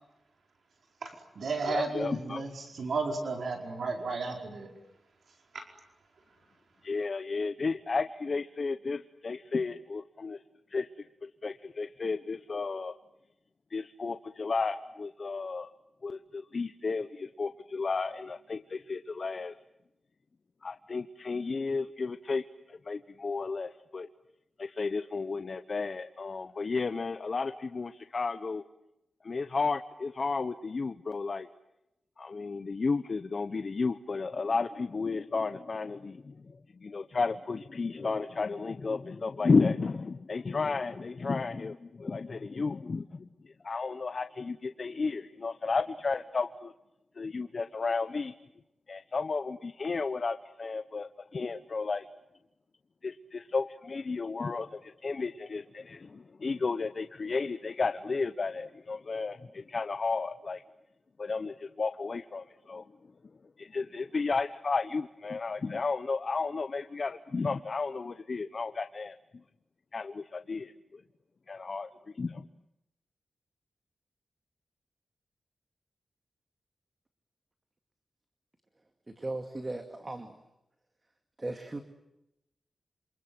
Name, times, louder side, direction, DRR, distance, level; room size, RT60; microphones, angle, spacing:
voice 1, 1.0-4.7 5.5-5.6, right 4 dB, 70° right, 3 dB, 4.9 m, -33 dB
voice 2, 1.7-2.5 6.8-10.4 10.7-10.9 11.2-12.9 13.7-15.7 16.0-19.5 20.6-24.1 24.6-28.6 29.2-31.5 32.2-46.7 47.2-48.3 48.9-52.1 53.0-60.6 61.2-62.8 63.6-69.2 69.9-71.0 71.5-71.9 72.1-72.4, left 4 dB, 45° left, 9 dB, 1.0 m, -33 dB
voice 3, 79.1-80.4 81.4-81.8, right 2 dB, 25° right, 6 dB, 2.3 m, -37 dB
27.5 x 27.5 x 7.9 m, 0.88 s
wide cardioid pair, 130°, 0 cm